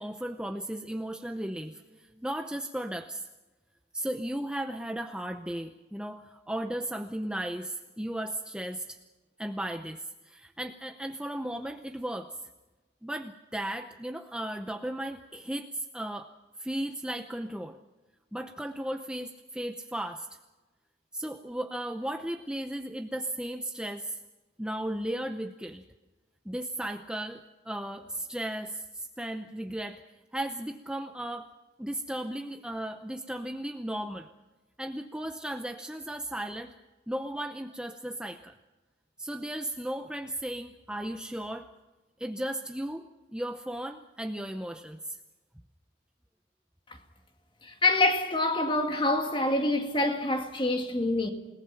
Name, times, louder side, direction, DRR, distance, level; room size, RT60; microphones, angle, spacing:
voice 1, 0.0-3.3 3.9-9.0 9.4-12.4 13.0-16.3 16.6-17.8 18.3-20.4 21.1-24.2 24.6-25.8 26.4-30.0 30.3-31.5 31.8-34.3 34.8-36.7 37.1-38.5 39.2-41.7 42.2-43.1 43.3-45.2, right 1 dB, 5° right, 0.7 m, -35 dB
voice 2, 47.6-51.3, left 2 dB, 25° left, 2.2 m, -26 dB
29.0 x 19.0 x 5.9 m
head